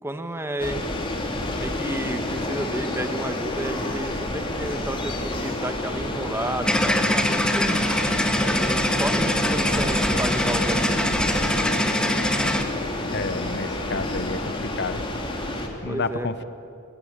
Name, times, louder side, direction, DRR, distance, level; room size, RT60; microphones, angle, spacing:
voice 1, 0.0-0.9 1.5-7.8 8.5-11.2 15.8-16.4, right 1 dB, 10° right, 8 dB, 1.3 m, -31 dB
sound 1, 0.6-15.7, left 1 dB, 25° left, 2.7 m, -29 dB
sound 2, 6.6-12.6, left 1 dB, 5° left, 1.6 m, -23 dB
voice 2, 13.1-15.1 15.8-16.4, left 3 dB, 55° left, 12 dB, 1.0 m, -30 dB
23.0 x 22.0 x 8.7 m, 2.7 s
head